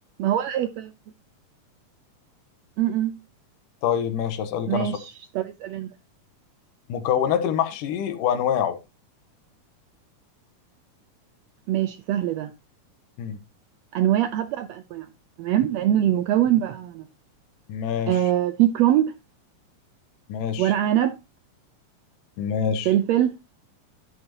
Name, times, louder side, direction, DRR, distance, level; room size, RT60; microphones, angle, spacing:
voice 1, 0.2-0.9 2.8-3.2 4.7-5.9 11.7-12.5 13.9-15.1 15.4-17.1 18.1-19.1 20.6-21.2 22.8-23.3, right 12 dB, 90° right, 1.4 m, -23 dB
voice 2, 3.8-4.9 6.9-8.8 13.2-13.4 17.7-18.2 20.3-20.7 22.4-22.9, left 8 dB, 85° left, 2.6 m, -25 dB
11.0 x 8.0 x 2.8 m
omnidirectional pair, 3.7 m